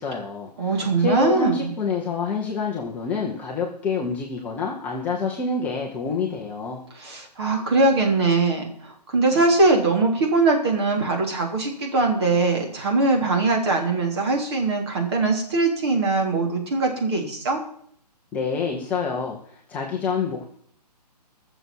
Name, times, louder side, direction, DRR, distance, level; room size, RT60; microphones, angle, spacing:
voice 1, 0.0-6.8 18.3-20.5, left 4 dB, 5° left, -3 dB, 0.8 m, -27 dB
voice 2, 0.6-1.7 7.0-17.6, right 3 dB, 40° right, 1 dB, 3.5 m, -21 dB
20.5 x 7.0 x 4.6 m, 0.63 s
hypercardioid pair, 165°, 21 cm